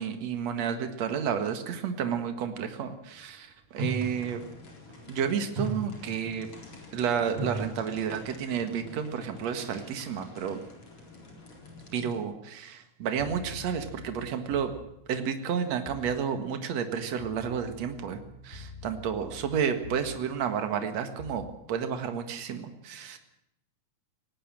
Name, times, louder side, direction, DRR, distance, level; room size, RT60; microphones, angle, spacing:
voice 1, 0.0-4.4 5.1-6.5 6.9-10.6 11.9-14.7 15.1-23.2, right 7 dB, 60° right, 7 dB, 2.9 m, -31 dB
sound 1, 2.4-2.5 3.8-4.5 4.9-5.2 5.6-6.5 7.4-8.2 8.5-8.8, right 2 dB, 90° right, 7.9 m, -35 dB
sound 2, 3.8-12.2, left 3 dB, 45° left, 5.0 m, -49 dB
sound 3, 13.2-15.0 15.9-16.3 17.2-20.4 21.2-21.6, left 3 dB, 20° left, 2.8 m, -46 dB
19.0 x 18.0 x 7.7 m, 0.80 s
omnidirectional pair, 3.4 m